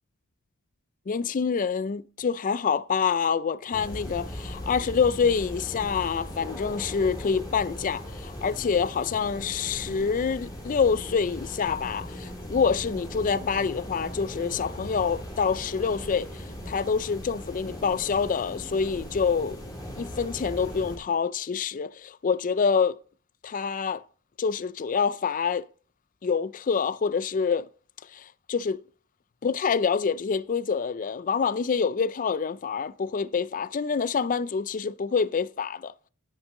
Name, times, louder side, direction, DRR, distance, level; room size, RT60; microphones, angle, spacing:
voice 1, 1.1-19.6 20.0-23.0 23.4-24.0 24.4-25.6 26.2-27.7 28.1-28.8 29.4-35.9, left 6 dB, 40° left, 0.4 m, -26 dB
sound 1, 3.7-21.0, equal, 15° left, 3.1 m, -39 dB
11.0 x 9.9 x 3.7 m
head